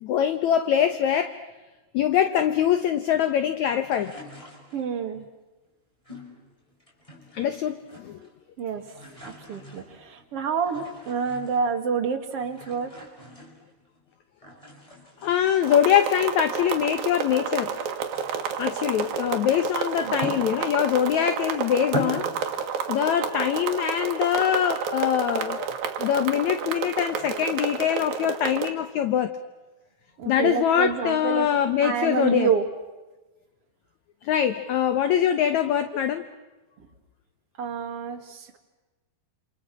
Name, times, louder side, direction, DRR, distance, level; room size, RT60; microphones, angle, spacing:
voice 1, 0.0-1.3 1.9-4.1 7.3-8.2 15.2-17.8 18.6-22.3 22.9-25.7 26.0-29.4 30.3-32.5 34.2-36.3, left 9 dB, 70° left, 10 dB, 1.8 m, -23 dB
sound 1, 3.8-5.1 6.0-7.5 7.8-8.4 8.7-11.8 12.4-14.0 14.4-17.0 17.4-21.0 21.4-21.5 21.8-22.6, equal, 10° left, 5.4 m, -40 dB
voice 2, 4.7-5.3 8.6-8.9 9.2-13.1 20.0-20.4 30.2-31.5 31.8-32.6 36.8-36.9 37.6-38.6, right 6 dB, 45° right, 5 dB, 2.7 m, -28 dB
sound 2, 15.6-28.7, right 7 dB, 70° right, 3.4 m, -30 dB
28.5 x 28.0 x 6.2 m, 1.1 s
omnidirectional pair, 4.5 m